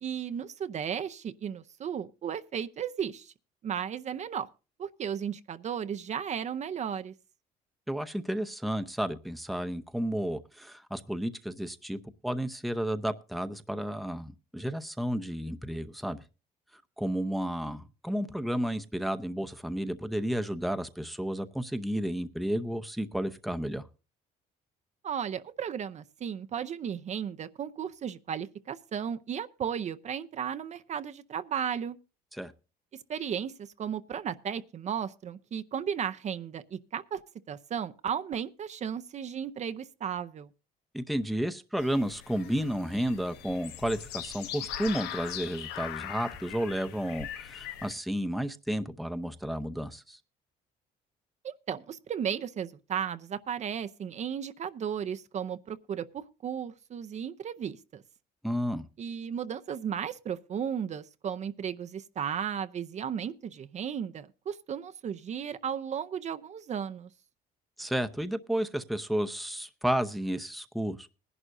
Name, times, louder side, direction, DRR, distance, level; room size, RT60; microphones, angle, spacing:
voice 1, 0.0-3.3 3.6-4.5 4.8-7.1 25.0-32.0 33.1-37.2 37.5-40.5 51.4-58.0 59.0-67.1, right 8 dB, 45° right, 0.6 m, -35 dB
voice 2, 7.9-16.2 17.0-23.9 32.3-32.5 40.9-50.2 58.4-58.9 67.8-71.1, equal, ahead, 0.7 m, -32 dB
sound 1, 41.8-47.9, left 11 dB, 90° left, 1.0 m, -41 dB
20.5 x 11.0 x 2.6 m
cardioid pair, 110°, 17 cm